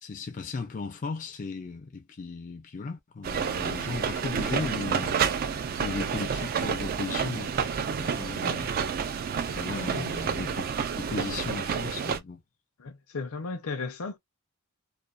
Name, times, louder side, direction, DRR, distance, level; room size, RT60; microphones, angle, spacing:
voice 1, 0.0-5.2 5.8-7.7 8.0-8.7 9.5-10.6 11.0-12.4, left 4 dB, 35° left, 0.4 m, -36 dB
sound 1, 3.2-12.2, right 6 dB, 40° right, 0.3 m, -29 dB
voice 2, 12.8-14.2, left 4 dB, 75° left, 0.6 m, -36 dB
2.6 x 2.2 x 2.3 m
head